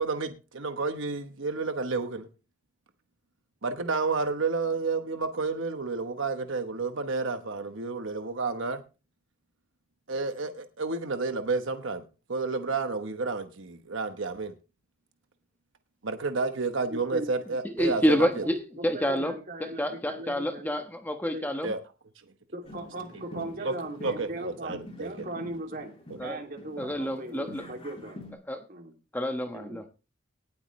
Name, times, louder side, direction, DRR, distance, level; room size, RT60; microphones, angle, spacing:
voice 1, 0.0-2.3 3.6-8.8 10.1-12.0 12.3-14.5 16.0-18.4 21.6-21.8 23.3-23.7 24.0-25.2, right 3 dB, 65° right, 1.1 m, -30 dB
voice 2, 16.9-17.3 18.7-20.8 21.3-21.5 22.5-25.9 26.2-28.2 28.7-28.9 29.5-29.8, right 1 dB, 45° right, 2.7 m, -38 dB
voice 3, 17.7-19.3 19.6-21.7 26.2-26.4 26.8-27.6 28.5-28.6 29.1-29.9, equal, 10° left, 1.1 m, -28 dB
sound 1, 22.6-28.3, left 1 dB, 25° left, 3.3 m, -46 dB
18.5 x 8.2 x 3.2 m
head